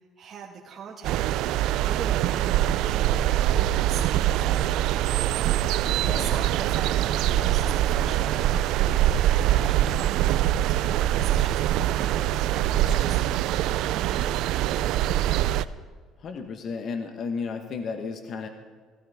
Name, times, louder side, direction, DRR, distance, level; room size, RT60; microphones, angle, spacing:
voice 1, 0.2-1.2 1.7-3.2 3.5-5.2 6.1-9.1 9.5-13.2 13.6-15.6, right 6 dB, 45° right, -3 dB, 1.6 m, -41 dB
sound 1, 1.0-15.7, right 12 dB, 75° right, 0.4 m, -23 dB
voice 2, 6.0-6.4 12.6-12.9 16.2-18.5, left 5 dB, 55° left, 6 dB, 1.1 m, -34 dB
17.0 x 15.0 x 3.5 m, 1.5 s
supercardioid pair, 85°, 0 cm